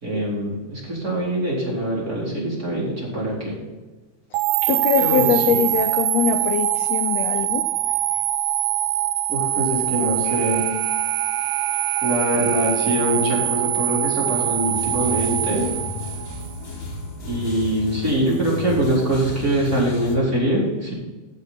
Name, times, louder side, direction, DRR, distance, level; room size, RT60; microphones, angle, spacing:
voice 1, 0.0-3.6 5.0-5.6 9.3-10.7 12.0-15.7 17.2-20.9, right 1 dB, 25° right, -5 dB, 4.3 m, -23 dB
sound 1, 4.3-16.5, right 16 dB, 80° right, 2.0 m, -23 dB
voice 2, 4.7-7.6, left 8 dB, 80° left, 7 dB, 1.5 m, -22 dB
Alarm, 10.2-13.2, right 10 dB, 60° right, 2.3 m, -36 dB
sound 2, 14.7-20.2, left 3 dB, 55° left, 3.4 m, -33 dB
16.0 x 7.7 x 4.1 m, 1.2 s
omnidirectional pair, 3.7 m